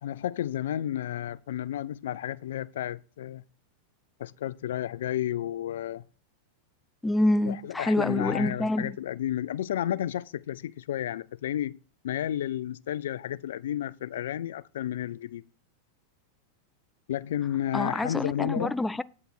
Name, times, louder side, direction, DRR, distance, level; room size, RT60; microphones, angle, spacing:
voice 1, 0.0-3.4 4.2-6.0 7.5-11.8 12.0-15.4 17.1-18.7, left 11 dB, 70° left, 0.3 m, -32 dB
voice 2, 7.0-9.0 17.7-19.0, left 1 dB, 10° left, 0.4 m, -27 dB
9.4 x 6.8 x 4.3 m
hypercardioid pair, 100°, 0 cm